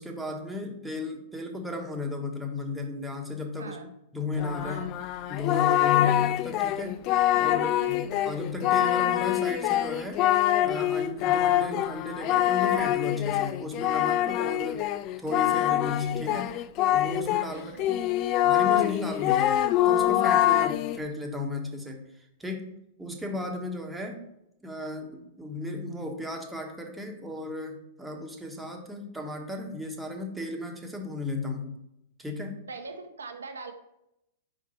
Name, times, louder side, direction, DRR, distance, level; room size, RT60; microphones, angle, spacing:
voice 1, 0.0-3.8 4.1-4.9 5.3-7.0 7.4-10.2 10.6-14.8 15.2-16.5 16.9-18.0 18.4-19.6 19.8-22.7 23.0-24.2 24.6-31.8 32.2-32.6, left 3 dB, 5° right, 1 dB, 1.2 m, -34 dB
voice 2, 3.6-3.9 4.6-5.0 5.9-6.2 7.3-8.3 17.5-18.0 32.7-33.7, right 4 dB, 80° right, 6 dB, 1.0 m, -42 dB
Singing, 4.4-17.5 17.8-21.0, left 13 dB, 40° left, 0.3 m, -25 dB
5.1 x 4.8 x 4.5 m, 0.83 s
figure-of-eight pair, 105°, 0 cm